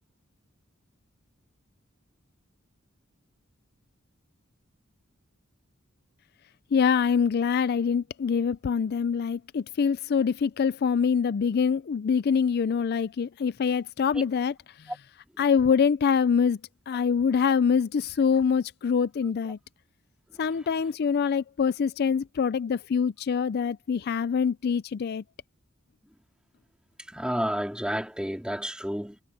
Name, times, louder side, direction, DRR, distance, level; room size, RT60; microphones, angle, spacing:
voice 1, 6.7-14.5 15.4-16.6 16.9-19.6 20.4-25.2, left 6 dB, 50° left, 0.4 m, -25 dB
voice 2, 27.1-29.2, equal, 5° right, 3.5 m, -31 dB
head